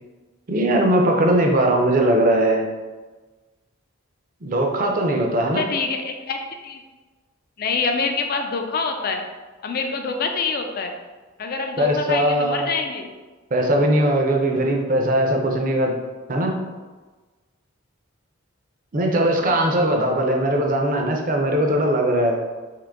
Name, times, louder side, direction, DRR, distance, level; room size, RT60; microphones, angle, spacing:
voice 1, 0.5-2.7 4.4-5.6 11.8-12.7 13.5-15.9 16.3-16.5 18.9-22.4, right 1 dB, 40° right, 2 dB, 0.5 m, -20 dB
voice 2, 5.6-6.8 7.6-9.2 9.6-10.9 11.4-13.1 19.4-19.5, left 4 dB, 45° left, 4 dB, 0.4 m, -26 dB
3.7 x 3.0 x 3.5 m, 1.3 s
head